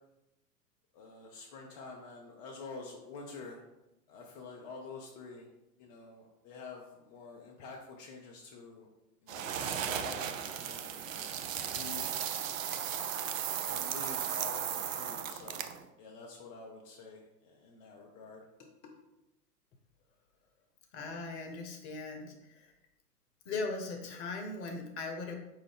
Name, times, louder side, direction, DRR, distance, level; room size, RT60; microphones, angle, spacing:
voice 1, 0.9-3.6 4.1-5.5 5.8-8.9 9.2-11.3 11.7-12.4 13.7-15.7 16.0-18.4 18.8-18.9, left 4 dB, 30° left, -1 dB, 0.4 m, -48 dB
sound 1, 9.3-15.9, right 9 dB, 60° right, 0.5 m, -36 dB
voice 2, 20.9-22.7 23.4-25.3, left 3 dB, 45° left, 3 dB, 1.0 m, -39 dB
5.1 x 2.6 x 3.4 m, 0.92 s
figure-of-eight pair, 105°, 47 cm